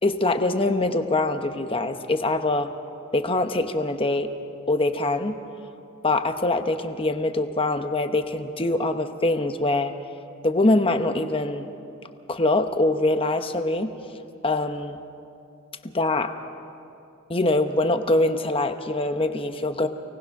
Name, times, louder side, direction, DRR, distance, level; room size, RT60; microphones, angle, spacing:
voice 1, 0.0-2.7 3.1-4.3 4.7-5.4 6.0-9.9 10.4-11.7 12.3-13.9 14.4-15.0 15.8-16.3 17.3-19.9, left 2 dB, 25° left, 8 dB, 1.0 m, -23 dB
29.0 x 19.0 x 6.0 m, 2.6 s
head